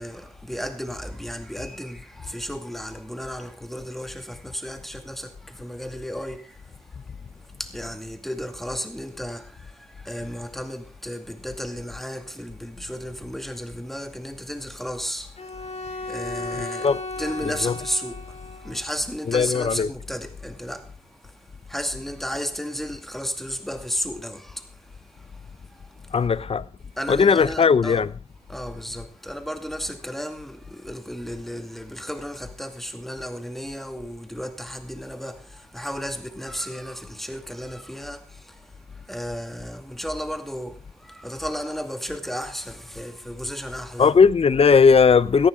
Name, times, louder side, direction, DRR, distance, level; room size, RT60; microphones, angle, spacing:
voice 1, 0.0-6.6 6.9-7.0 7.6-21.0 21.2-21.3 21.7-24.8 25.2-25.9 26.2-26.3 27.0-28.0 28.5-44.1, equal, ahead, 2.3 m, -34 dB
Bowed string instrument, 15.4-18.9, left 2 dB, 70° left, 3.6 m, -35 dB
voice 2, 16.6-17.0 17.4-17.8 19.2-19.9 26.1-26.6 27.1-28.1 44.0-45.5, left 5 dB, 55° left, 0.7 m, -18 dB
17.5 x 14.0 x 3.7 m
wide cardioid pair, 80°, 12 cm